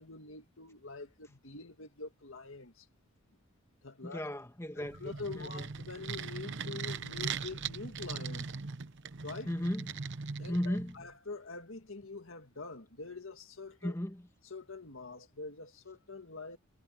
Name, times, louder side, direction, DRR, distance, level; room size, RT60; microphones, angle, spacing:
voice 1, 0.0-2.9 3.8-4.2 4.8-8.5 9.2-9.5 10.4-13.9 14.5-16.6, left 3 dB, 60° left, 2.0 m, -45 dB
voice 2, 4.0-5.0 5.3-5.7 9.5-9.9 10.5-11.0 13.8-14.3, equal, 10° left, 1.5 m, -35 dB
sound 1, 4.8-11.1, right 5 dB, 55° right, 0.9 m, -40 dB
head